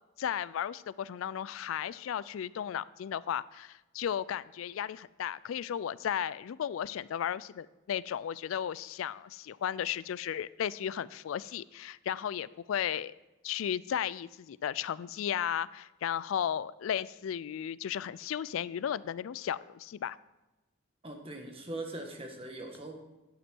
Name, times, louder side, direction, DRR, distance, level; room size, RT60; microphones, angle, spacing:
voice 1, 0.2-13.1 13.4-20.2, left 9 dB, 90° left, 0.3 m, -35 dB
voice 2, 21.0-22.9, right 2 dB, 30° right, 1.4 m, -41 dB
11.0 x 8.1 x 4.5 m
head